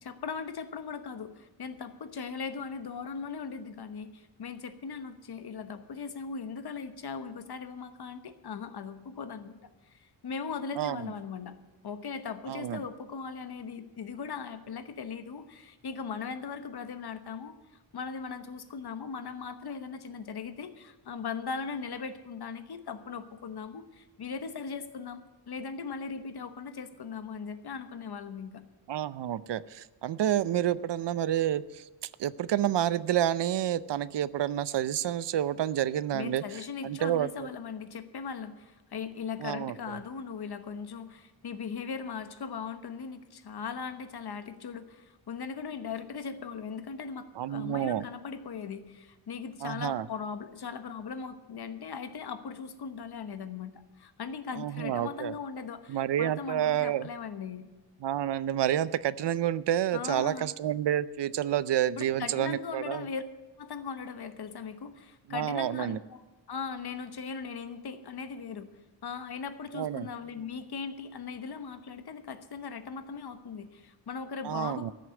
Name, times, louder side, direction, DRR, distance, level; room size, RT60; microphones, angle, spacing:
voice 1, 0.0-9.6 9.9-11.6 11.8-17.6 17.9-28.6 36.1-57.7 59.9-60.5 62.0-63.2 63.6-66.2 66.5-68.7 69.0-74.9, left 5 dB, 60° left, 10 dB, 1.1 m, -39 dB
voice 2, 10.8-11.1 12.5-12.8 28.9-31.9 32.2-36.4 36.8-37.3 39.4-40.0 47.4-48.0 49.6-50.1 54.5-55.3 55.9-57.1 58.0-63.1 65.3-66.0 69.7-70.1 74.4-74.9, right 11 dB, 65° right, 18 dB, 0.6 m, -29 dB
14.0 x 6.7 x 8.7 m, 1.2 s
wide cardioid pair, 145°, 44 cm